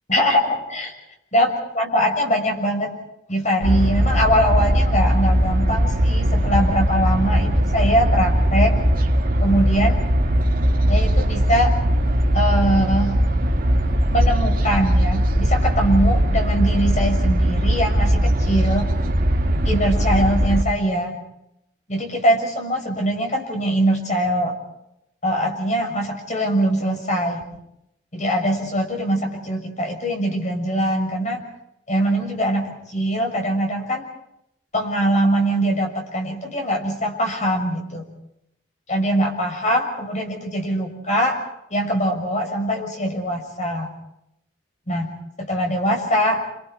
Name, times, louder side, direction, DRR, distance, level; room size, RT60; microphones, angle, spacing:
voice 1, 0.1-0.9 1.3-2.9 3.3-8.7 9.4-10.0 10.9-11.7 12.3-13.2 14.1-18.9 19.6-21.2 21.9-24.6 25.2-27.4 28.1-31.4 31.9-34.1 34.7-38.1 38.9-41.4 41.7-43.9 44.9-45.1 45.4-46.4, equal, 40° left, 2 dB, 6.6 m, -22 dB
sound 1, 3.6-20.6, equal, 50° right, 2.1 m, -19 dB
29.0 x 28.5 x 4.6 m, 0.81 s
head